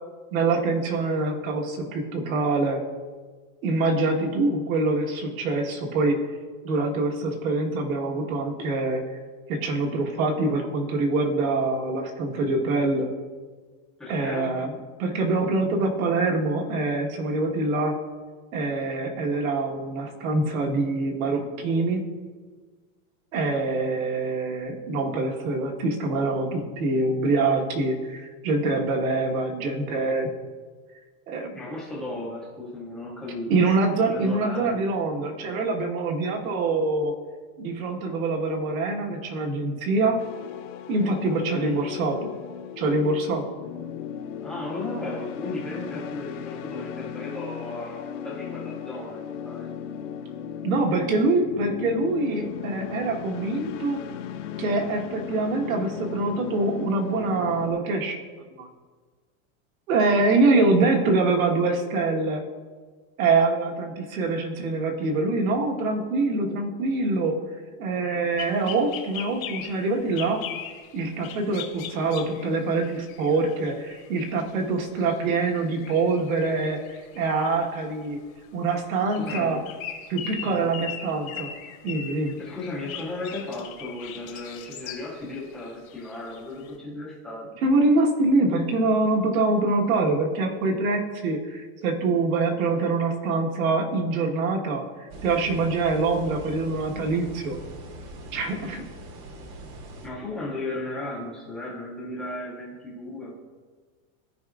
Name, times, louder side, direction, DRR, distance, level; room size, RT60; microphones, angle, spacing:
voice 1, 0.3-2.8 3.6-6.2 6.6-9.0 9.5-13.1 14.1-14.7 15.0-17.9 18.5-22.0 23.3-30.3 31.3-31.6 33.5-37.1 37.6-40.2 40.9-42.2 42.8-43.4 50.6-54.0 54.6-58.2 58.6-58.7 59.9-62.4 63.2-67.3 67.8-70.4 70.9-76.8 77.1-78.2 78.5-79.6 80.1-81.5 81.8-82.4 87.6-97.6 98.3-98.8, right 3 dB, 75° right, 2 dB, 1.4 m, -24 dB
voice 2, 14.0-14.6 31.5-33.5 34.1-34.9 41.6-41.8 44.4-49.7 79.2-79.7 80.4-80.6 82.4-87.5 100.0-103.4, left 2 dB, ahead, -7 dB, 0.4 m, -35 dB
sound 1, 40.2-57.7, left 8 dB, 60° left, 0.7 m, -36 dB
sound 2, 68.4-74.5 75.0-75.1 75.4-78.1 79.0-85.2 85.6-86.7, left 9 dB, 75° left, 1.5 m, -39 dB
sound 3, 95.1-100.1, right 1 dB, 40° right, 0.8 m, -41 dB
13.5 x 4.9 x 2.4 m, 1.4 s
supercardioid pair, 180°, 42 cm